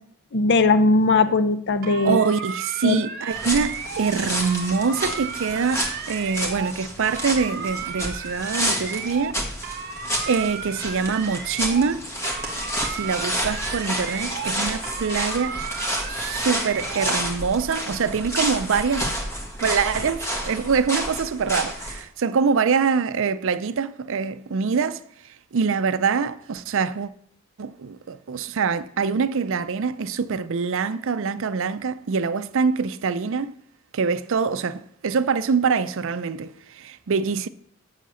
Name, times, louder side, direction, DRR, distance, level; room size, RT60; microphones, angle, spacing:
voice 1, 0.3-2.2 2.8-3.0, left 3 dB, 55° left, 0.6 m, -19 dB
sound 1, 1.8-4.1 4.4-6.7 7.0-9.3 9.6-12.0 12.2-14.6 14.8-17.2, right 6 dB, 50° right, 1.0 m, -34 dB
voice 2, 2.0-9.4 10.3-12.1 12.9-15.6 16.1-19.1 19.6-25.0 25.5-27.1 27.6-33.5 33.9-37.5, right 5 dB, 65° right, 0.5 m, -24 dB
sound 2, 3.3-22.0, equal, 15° left, 1.7 m, -30 dB
7.5 x 6.6 x 7.0 m
head